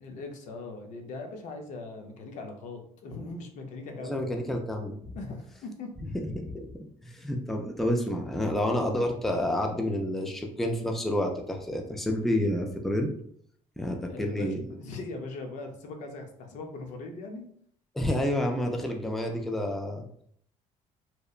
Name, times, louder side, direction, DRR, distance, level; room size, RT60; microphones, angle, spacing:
voice 1, 0.0-4.5 5.1-6.2 14.1-17.5, left 3 dB, 70° left, 3 dB, 0.5 m, -40 dB
voice 2, 4.0-5.2 6.1-13.1 13.8-14.6 17.9-20.0, left 1 dB, ahead, 2 dB, 0.3 m, -29 dB
2.8 x 2.1 x 2.3 m, 0.64 s
cardioid pair, 115°, 13 cm